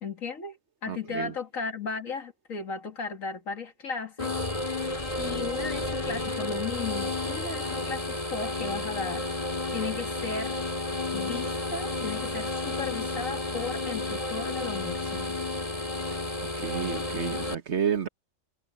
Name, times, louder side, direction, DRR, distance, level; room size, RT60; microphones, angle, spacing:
voice 1, 0.0-4.3 4.7-4.9 5.2-9.3 9.7-10.6 11.1-15.4, left 5 dB, 85° left, 2.6 m, -36 dB
voice 2, 0.9-1.3 16.6-18.1, right 7 dB, 60° right, 1.5 m, -30 dB
sound 1, 4.2-17.5, left 2 dB, 25° left, 2.9 m, -31 dB
omnidirectional pair, 1.4 m